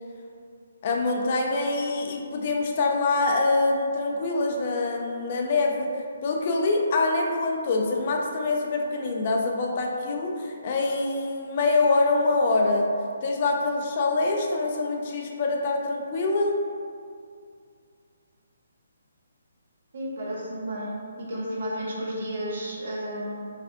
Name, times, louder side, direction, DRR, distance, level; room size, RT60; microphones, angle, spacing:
voice 1, 0.8-12.9 13.2-16.6, left 3 dB, 45° left, 1 dB, 0.3 m, -25 dB
voice 2, 19.9-23.5, equal, 60° right, -5 dB, 0.8 m, -32 dB
3.2 x 2.4 x 2.5 m, 2.3 s
figure-of-eight pair, 140°, 0 cm